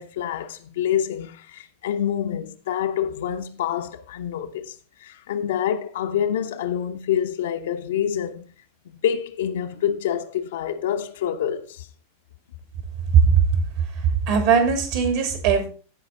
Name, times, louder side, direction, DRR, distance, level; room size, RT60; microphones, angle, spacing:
voice 1, 0.0-4.7 5.0-8.5 9.0-11.9, left 9 dB, 60° left, 0.9 m, -27 dB
voice 2, 13.1-15.7, right 6 dB, 50° right, 2.7 m, -19 dB
15.0 x 5.0 x 3.9 m
figure-of-eight pair, 90°, 0 cm